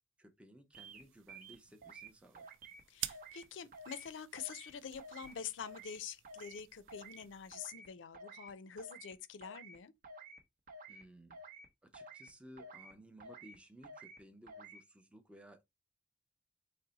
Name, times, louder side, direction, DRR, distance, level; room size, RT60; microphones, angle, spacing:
voice 1, 0.2-2.5 10.9-11.4 11.8-15.6, equal, 5° right, 0.5 m, -58 dB
sound 1, 0.7-1.0 1.3-2.1 2.3-2.8 3.1-3.4 3.7-4.1 4.3-4.7 5.0-5.3 5.6-6.0 6.2-6.6 6.9-7.2 7.5-7.9 8.1-8.5 8.8-9.1 9.4-9.8 10.0-10.4 10.7-11.0 11.3-11.7 11.9-12.3 12.6-12.9 13.2-13.6 13.8-14.2 14.5-14.8, right 2 dB, 45° right, 0.7 m, -52 dB
sound 2, 0.7-7.5, right 13 dB, 85° right, 0.4 m, -51 dB
voice 2, 2.9-9.9, left 7 dB, 75° left, 0.4 m, -46 dB
4.0 x 2.1 x 3.9 m
head